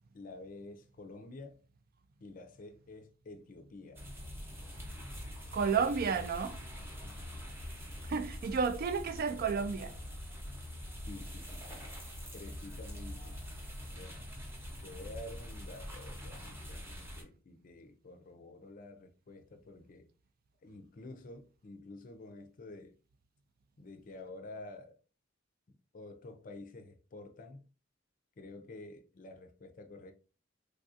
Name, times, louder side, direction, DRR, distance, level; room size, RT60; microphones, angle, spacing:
voice 1, 0.1-1.6 2.2-4.0 6.8-7.6 10.4-10.7 11.1-11.9 12.3-13.4 13.9-14.3 14.8-20.1 20.6-23.0 23.8-25.0 25.7-27.6 28.4-30.1, left 2 dB, 45° left, 0.4 m, -50 dB
sound 1, 4.0-17.2, equal, 10° right, 0.7 m, -44 dB
voice 2, 5.5-6.6 8.1-9.9, right 5 dB, 50° right, 0.3 m, -31 dB
3.3 x 2.4 x 2.6 m
head